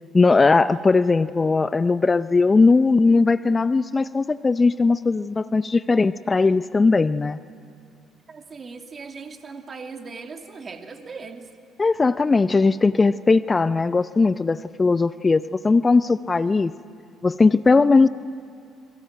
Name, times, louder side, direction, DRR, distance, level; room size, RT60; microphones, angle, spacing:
voice 1, 0.1-7.4 11.8-16.7 17.2-18.1, left 3 dB, 30° left, 15 dB, 0.6 m, -19 dB
voice 2, 8.3-11.5, right 4 dB, 40° right, 5 dB, 2.7 m, -38 dB
28.0 x 22.0 x 9.3 m, 2.3 s
hypercardioid pair, 50°, 0 cm